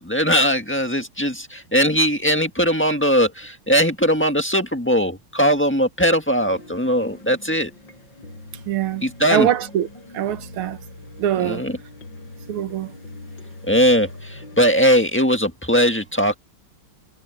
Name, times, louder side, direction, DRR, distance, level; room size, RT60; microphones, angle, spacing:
voice 1, 0.0-7.7 9.0-9.5 11.4-11.8 13.7-16.4, equal, 5° left, 1.3 m, -19 dB
sound 1, 6.4-14.6, left 2 dB, 60° left, 7.2 m, -42 dB
voice 2, 8.7-9.9 10.1-10.8 11.2-11.6 12.5-12.9, right 11 dB, 90° right, 1.8 m, -23 dB
omnidirectional pair, 2.3 m